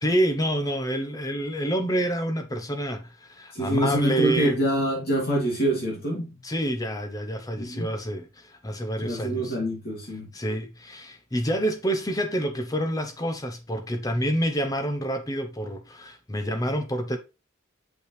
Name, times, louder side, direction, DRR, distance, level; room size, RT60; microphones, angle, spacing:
voice 1, 0.0-4.6 6.4-9.6 10.3-17.2, right 1 dB, 20° left, 0.7 m, -28 dB
voice 2, 3.5-6.4 7.6-7.9 9.0-10.3, right 1 dB, 50° left, 2.5 m, -26 dB
6.6 x 5.4 x 3.2 m
head